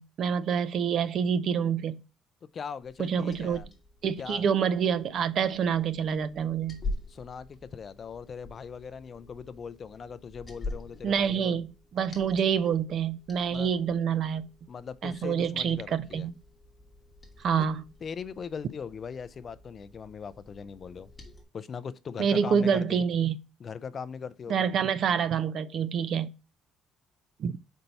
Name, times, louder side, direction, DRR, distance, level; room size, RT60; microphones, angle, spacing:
voice 1, 0.0-2.0 3.0-3.7 4.0-6.8 11.0-14.5 15.0-16.3 17.4-17.8 22.2-23.4 24.5-26.3 27.4-27.6, right 7 dB, 45° right, 0.4 m, -27 dB
voice 2, 2.5-3.7 4.2-4.5 7.1-11.6 13.5-13.7 14.7-16.3 18.0-21.1 21.5-23.0 23.6-24.7, left 6 dB, 35° left, 0.4 m, -40 dB
Liquid, 2.8-21.4, left 2 dB, 15° left, 1.2 m, -45 dB
5.4 x 4.5 x 4.0 m
cardioid pair, 145°, 0 cm